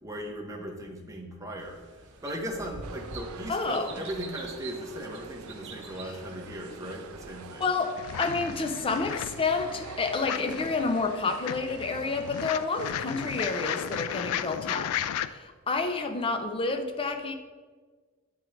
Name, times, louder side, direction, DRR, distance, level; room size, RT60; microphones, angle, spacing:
voice 1, 0.0-1.8 2.2-7.7 9.1-9.3, equal, 15° right, 1 dB, 0.9 m, -38 dB
sound 1, 1.6-7.8, right 3 dB, 60° right, 0.8 m, -46 dB
sound 2, 2.8-14.1, right 5 dB, 75° right, 0.4 m, -46 dB
voice 2, 3.5-3.9 7.6-14.9 15.3-17.3, left 3 dB, 25° left, 6 dB, 0.5 m, -29 dB
sound 3, 8.0-15.3, left 10 dB, 85° left, 0.3 m, -35 dB
8.1 x 3.8 x 4.4 m, 1.5 s
head